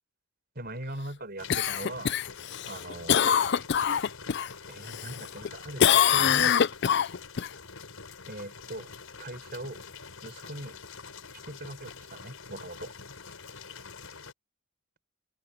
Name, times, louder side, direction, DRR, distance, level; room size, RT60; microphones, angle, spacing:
voice 1, 0.6-2.2 2.6-3.2 4.7-6.6 8.3-8.9 9.2-9.8 10.2-10.7 11.5-12.9, right 1 dB, 50° right, 5.2 m, -40 dB
sound 1, 1.4-14.3, left 5 dB, 85° left, 4.9 m, -46 dB
Cough, 1.5-4.5 4.9-5.5 5.8-7.5 11.9-12.0, left 8 dB, 55° left, 0.4 m, -24 dB
open air
head